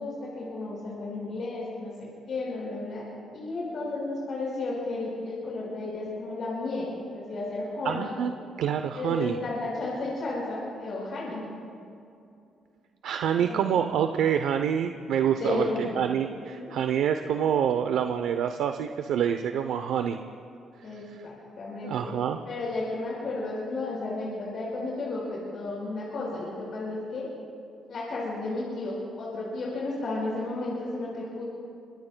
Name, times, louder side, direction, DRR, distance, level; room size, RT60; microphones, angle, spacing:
voice 1, 0.0-3.0 3.3-8.2 8.9-11.4 13.3-13.6 15.4-16.0 16.5-16.7 20.8-22.1 22.5-27.3 27.9-31.4, left 2 dB, 60° left, -6 dB, 5.2 m, -33 dB
voice 2, 7.8-8.3 8.6-9.4 13.0-20.2 21.8-22.4, right 8 dB, 80° right, 7 dB, 0.6 m, -26 dB
26.0 x 24.5 x 2.2 m, 2.5 s
cardioid pair, 90°, 0 cm